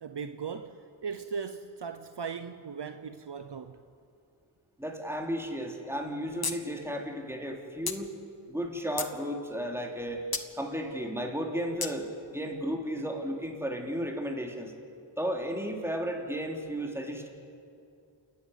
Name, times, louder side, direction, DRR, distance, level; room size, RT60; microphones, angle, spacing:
voice 1, 0.0-3.8, right 6 dB, 55° right, 0.9 m, -38 dB
voice 2, 4.8-8.1 8.5-10.2 10.6-14.7 15.2-17.3, equal, 5° right, 3.5 m, -34 dB
sound 1, 6.4-6.6 6.9-7.0 7.9-8.0 8.6-9.2 10.3-10.5 11.8-11.9, left 5 dB, 50° left, 1.3 m, -32 dB
28.0 x 11.5 x 9.4 m
cardioid pair, 45°, 48 cm